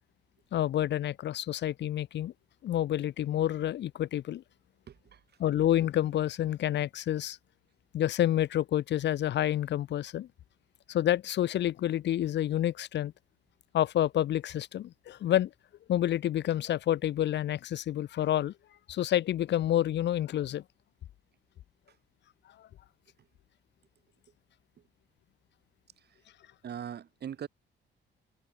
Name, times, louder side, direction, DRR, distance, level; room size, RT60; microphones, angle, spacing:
voice 1, 0.5-2.3 2.6-4.4 5.4-7.4 7.9-10.3 10.9-13.1 13.7-15.5 15.9-18.5 18.9-20.6 22.6-22.7, left 12 dB, 60° left, 0.6 m, -28 dB
voice 2, 4.9-5.2 26.6-27.5, right 9 dB, 55° right, 2.2 m, -40 dB
cardioid pair, 90°, 20 cm